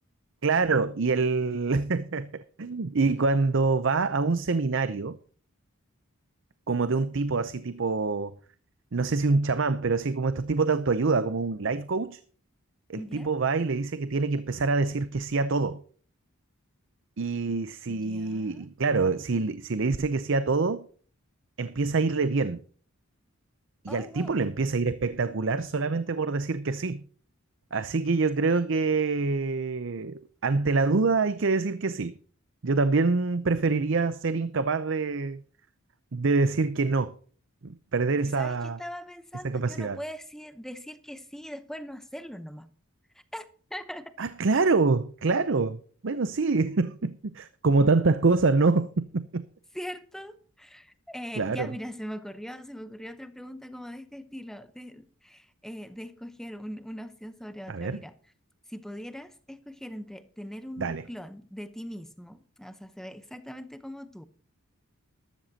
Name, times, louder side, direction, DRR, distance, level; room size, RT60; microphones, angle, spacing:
voice 1, 0.4-5.2 6.7-8.4 8.9-12.2 12.9-15.8 17.2-20.9 21.6-22.6 23.8-27.0 27.7-32.2 32.6-35.4 36.1-37.1 37.6-38.8 39.4-40.0 44.2-49.4 51.4-51.7 57.7-58.0 60.8-61.0, right 3 dB, 55° right, 0.6 m, -26 dB
voice 2, 12.9-13.3 17.9-18.7 23.9-24.4 38.2-42.7 43.1-44.1 49.7-58.1 58.7-64.2, equal, ahead, 0.8 m, -41 dB
13.5 x 12.5 x 2.8 m
head